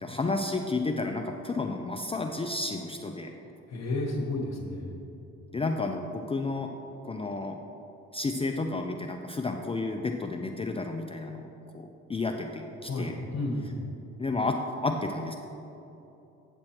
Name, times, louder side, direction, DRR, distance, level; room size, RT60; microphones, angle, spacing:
voice 1, 0.0-3.3 5.5-6.7 7.0-7.6 8.1-11.5 11.7-13.1 14.2-15.3, left 3 dB, 20° left, 3 dB, 0.4 m, -31 dB
voice 2, 3.7-4.9 12.8-13.7, left 2 dB, 60° left, -1 dB, 1.2 m, -32 dB
8.9 x 6.1 x 4.3 m, 2.9 s
cardioid pair, 90°, 30 cm